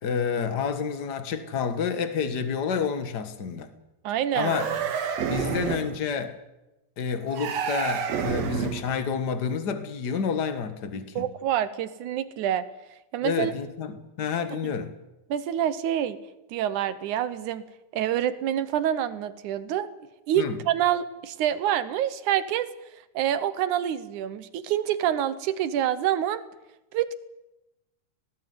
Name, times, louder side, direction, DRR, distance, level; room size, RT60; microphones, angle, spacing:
voice 1, 0.0-3.7 4.3-4.7 5.3-6.4 7.0-11.2 13.2-14.9 20.4-20.6, left 6 dB, 70° left, 0.9 m, -29 dB
voice 2, 4.0-4.6 11.2-12.7 13.1-13.5 14.5-14.6 15.3-16.2 16.5-17.6 17.9-19.9 20.3-22.7 23.1-26.4 26.9-27.1, right 11 dB, 70° right, 2.0 m, -26 dB
sound 1, 4.3-6.0 7.3-8.9, right 7 dB, 55° right, 2.3 m, -29 dB
18.5 x 16.5 x 9.4 m
omnidirectional pair, 4.3 m